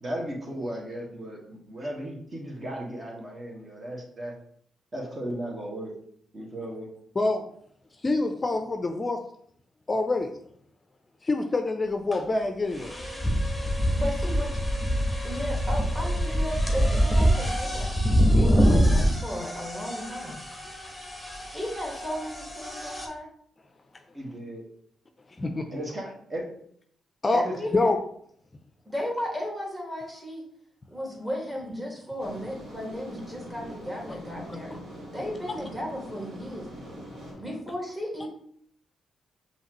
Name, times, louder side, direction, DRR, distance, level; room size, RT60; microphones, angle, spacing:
voice 1, 0.0-4.3 4.9-5.9 6.3-6.9 24.1-24.6 25.7-26.5 27.3-27.5, right 1 dB, 35° right, -2 dB, 1.5 m, -35 dB
voice 2, 8.0-9.2 9.9-10.3 11.2-12.9 25.4-25.6 27.2-27.4 27.7-28.0 37.3-37.4, left 2 dB, 30° left, 5 dB, 0.5 m, -26 dB
sound 1, 12.1-12.2 12.7-23.1, equal, 5° left, 1.2 m, -25 dB
voice 3, 13.9-14.5 15.2-17.9 18.2-20.4 21.5-23.3 27.6-27.9 28.9-30.4 30.9-34.8 35.1-36.7 37.4-38.3, equal, 10° right, -1 dB, 1.8 m, -35 dB
sound 2, 32.2-37.3, right 1 dB, 70° right, 1.9 m, -43 dB
5.5 x 2.9 x 3.0 m, 0.64 s
supercardioid pair, 65°, 0 cm